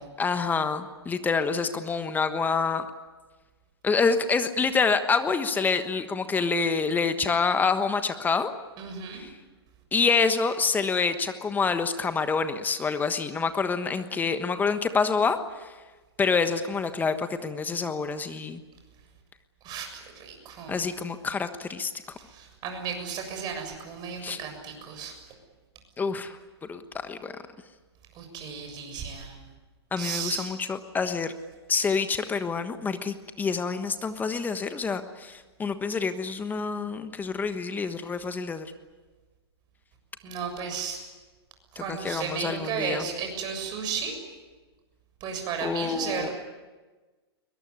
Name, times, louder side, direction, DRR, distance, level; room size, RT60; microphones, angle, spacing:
voice 1, 0.2-2.8 3.8-8.5 9.2-9.3 9.9-15.7 16.2-18.6 20.7-21.9 24.2-24.4 26.0-26.4 26.7-27.3 29.9-31.3 31.7-38.7 41.7-43.0 45.6-46.3, left 5 dB, 15° left, 10 dB, 1.3 m, -27 dB
voice 2, 8.8-9.2 19.6-20.9 22.2-25.1 28.1-29.4 30.0-30.5 40.2-41.0 41.7-44.2 45.2-46.3, right 6 dB, 30° right, 4 dB, 7.1 m, -34 dB
22.0 x 21.5 x 9.8 m, 1.3 s
hypercardioid pair, 125°, 14 cm